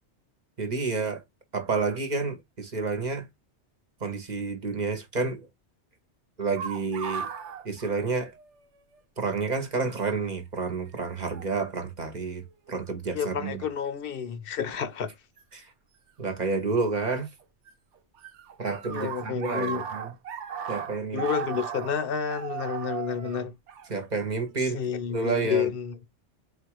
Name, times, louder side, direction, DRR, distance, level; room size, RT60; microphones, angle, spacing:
voice 1, 0.6-1.2 1.5-3.3 4.0-5.5 6.4-7.3 7.6-8.3 9.2-13.6 15.5-15.7 16.2-17.3 18.6-20.1 20.7-21.2 23.9-24.8 25.1-25.7, right 4 dB, 45° right, 1.0 m, -29 dB
sound 1, 6.6-8.6 8.9-9.0 10.0-10.3 11.3-11.5 12.2-12.7 15.4-15.5 16.8-17.7 17.9-24.5, right 7 dB, 80° right, 0.9 m, -37 dB
voice 2, 13.1-15.1 18.9-19.8 21.1-23.5 24.7-25.9, left 7 dB, 60° left, 0.8 m, -30 dB
4.2 x 2.4 x 4.5 m
omnidirectional pair, 1.2 m